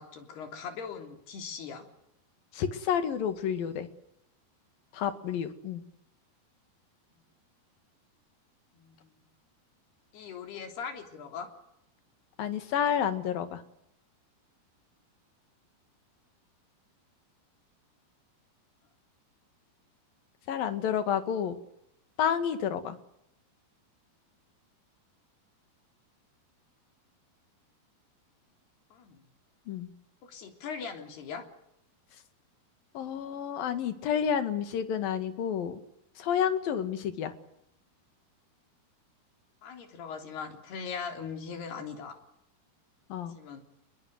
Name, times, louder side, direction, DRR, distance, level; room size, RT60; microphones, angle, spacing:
voice 1, 0.0-1.9 8.7-9.2 10.1-11.5 28.9-29.2 30.2-31.5 39.6-42.2 43.3-43.6, left 6 dB, 80° left, 6 dB, 5.4 m, -40 dB
voice 2, 2.5-3.9 4.9-5.8 12.4-13.6 20.5-21.6 22.2-23.0 29.7-29.9 33.0-35.8 36.2-37.3 43.1-43.4, left 8 dB, 65° left, 10 dB, 3.7 m, -30 dB
29.0 x 21.5 x 7.9 m, 0.78 s
omnidirectional pair, 4.6 m